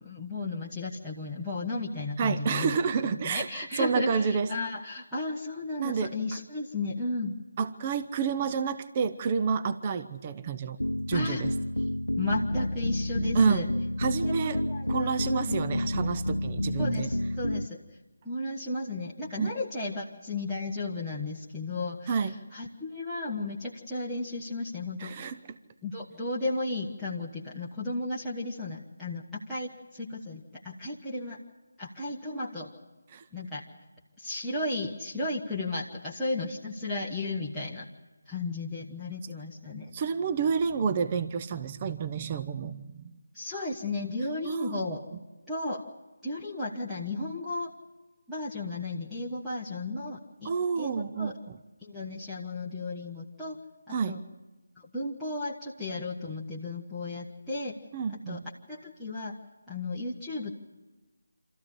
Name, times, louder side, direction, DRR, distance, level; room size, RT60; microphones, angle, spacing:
voice 1, 0.0-2.8 3.2-7.4 11.1-11.4 12.2-13.7 14.2-15.6 16.8-17.8 18.2-25.3 25.8-31.4 31.8-32.7 33.3-33.6 34.2-37.9 38.3-39.9 43.3-45.0 45.5-45.8 46.2-47.7 48.3-50.5 50.8-51.4 51.8-53.6 53.9-54.2 54.8-57.7 58.1-58.4 58.7-59.4 59.7-60.5, left 2 dB, ahead, -11 dB, 1.3 m, -34 dB
voice 2, 2.2-4.5 5.8-6.4 7.6-10.8 11.1-11.6 13.3-13.6 14.0-14.6 14.9-17.1 19.4-19.6 22.1-22.4 25.0-25.6 33.1-33.2 39.9-43.2 44.4-44.8 50.4-51.3 53.9-54.2 57.9-58.4, right 6 dB, 25° right, 10 dB, 0.7 m, -29 dB
sound 1, 10.8-17.7, left 1 dB, 85° left, 0.6 m, -30 dB
26.5 x 14.0 x 10.0 m, 1.2 s
figure-of-eight pair, 155°, 0 cm